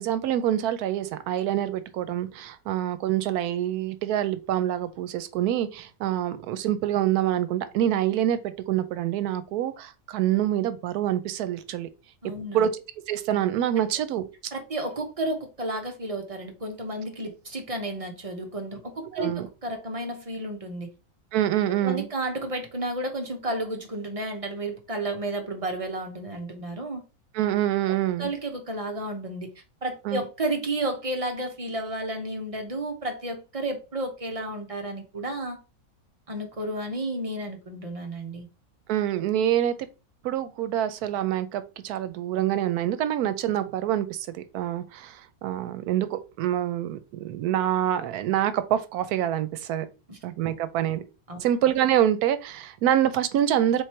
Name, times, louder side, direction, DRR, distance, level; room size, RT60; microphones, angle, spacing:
voice 1, 0.0-11.9 12.5-12.8 13.1-14.3 19.1-19.5 21.3-22.1 27.3-28.3 30.0-30.2 38.9-39.7 40.2-49.9 50.2-51.0 51.4-53.8, right 11 dB, 85° right, 1.1 m, -26 dB
voice 2, 12.2-12.7 14.5-20.9 21.8-27.0 28.2-29.5 29.8-35.6 36.3-38.5 50.1-50.2 51.3-51.4, right 1 dB, 30° right, 0.8 m, -32 dB
3.9 x 3.2 x 4.3 m
omnidirectional pair, 1.6 m